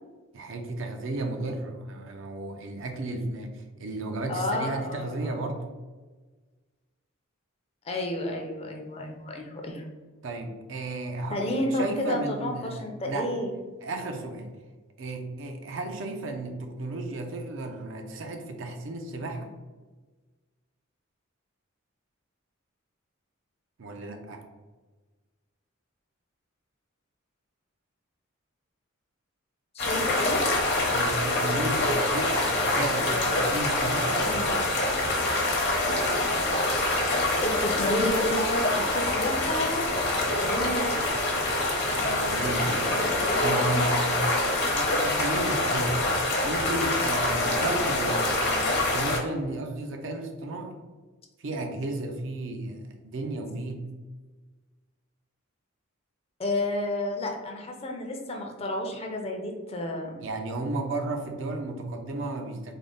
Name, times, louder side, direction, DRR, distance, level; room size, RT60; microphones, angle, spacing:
voice 1, 0.3-5.6 10.2-13.3 13.8-14.5 15.0-19.5 23.8-24.4 30.9-34.7 41.9-44.2 44.7-50.7 51.4-53.8 60.2-62.7, right 2 dB, 65° right, 4 dB, 0.5 m, -33 dB
voice 2, 4.3-5.4 7.8-9.8 11.3-13.5 29.7-30.4 33.0-33.3 34.2-34.5 37.4-39.9 40.4-41.1 42.8-44.2 56.4-60.2, left 1 dB, 30° left, 2 dB, 0.5 m, -31 dB
sound 1, 29.8-49.2, left 2 dB, 55° left, 0.8 m, -25 dB
3.6 x 2.0 x 3.7 m, 1.3 s
head